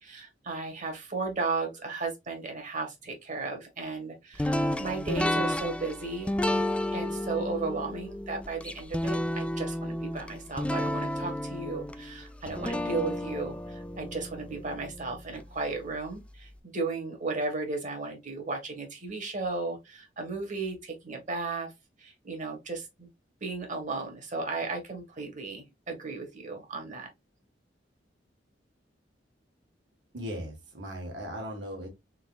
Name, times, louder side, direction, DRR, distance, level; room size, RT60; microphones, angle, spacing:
voice 1, 0.0-6.3 6.9-21.7 22.0-23.1 23.4-27.1, right 3 dB, 45° right, 1.4 m, -35 dB
sound 1, 4.4-15.4, left 1 dB, 5° left, 0.3 m, -32 dB
voice 2, 30.1-31.9, equal, 70° right, 1.7 m, -38 dB
3.9 x 3.8 x 2.4 m
head